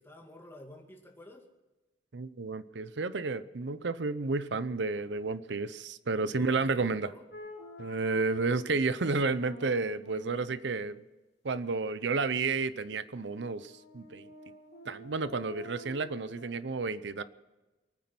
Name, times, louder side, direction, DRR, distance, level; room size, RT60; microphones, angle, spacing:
voice 1, 0.0-1.5 6.3-7.2, left 1 dB, 15° left, 1 dB, 2.3 m, -49 dB
voice 2, 2.1-7.1 7.8-11.0 11.4-14.3 14.9-17.2, right 3 dB, 70° right, 15 dB, 0.7 m, -31 dB
sound 1, 7.3-8.7 9.3-11.0 13.1-16.5, equal, 55° left, 3.6 m, -49 dB
23.5 x 9.5 x 6.1 m, 1.1 s
head